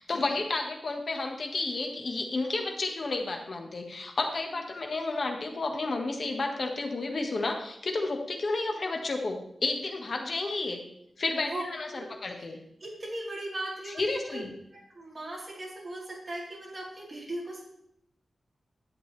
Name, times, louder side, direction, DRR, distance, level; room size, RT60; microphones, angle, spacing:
voice 1, 0.0-10.8 11.2-12.6 14.0-14.5, left 3 dB, 55° left, 3 dB, 1.4 m, -31 dB
voice 2, 11.9-14.4 14.7-17.6, right 1 dB, 30° right, -5 dB, 3.6 m, -39 dB
11.0 x 7.9 x 3.3 m, 0.75 s
wide cardioid pair, 125°, 0 cm